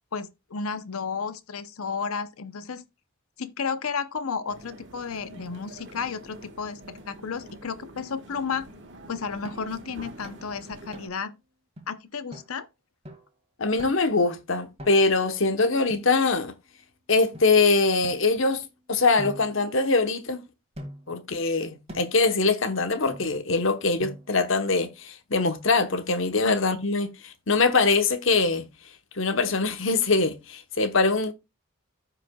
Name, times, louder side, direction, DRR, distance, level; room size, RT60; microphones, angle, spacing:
voice 1, 0.1-2.8 3.4-8.7 9.1-11.3 11.9-12.7 26.4-26.6, left 5 dB, 90° left, 0.7 m, -32 dB
sound 1, 4.5-11.1, right 1 dB, 55° right, 1.6 m, -46 dB
sound 2, 9.4-9.7 10.2-10.5 10.9-11.3 11.8-11.9 12.3-12.5 13.0-13.3 13.8-14.1 14.8-15.2 15.9-16.6 17.3-17.5 18.0-18.7 19.2-20.2 20.7-21.2 21.9-22.3 23.1-23.5 24.0-24.5, equal, 30° right, 2.0 m, -44 dB
voice 2, 13.6-16.5 17.1-18.6 18.9-20.4 21.1-28.6 29.2-31.3, left 3 dB, 65° left, 1.1 m, -23 dB
14.5 x 5.0 x 2.3 m
head